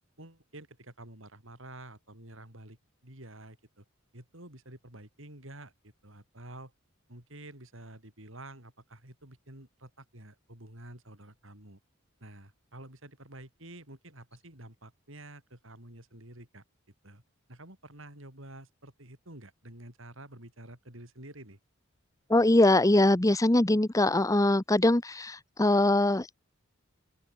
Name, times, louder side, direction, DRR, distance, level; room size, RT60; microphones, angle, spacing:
voice 1, 0.2-2.8 3.0-3.8 4.1-6.7 7.1-11.8 12.2-16.6 17.0-17.2 17.5-21.6, right 1 dB, 65° right, 6.2 m, -49 dB
voice 2, 22.3-26.4, left 1 dB, 15° left, 0.9 m, -23 dB
open air
head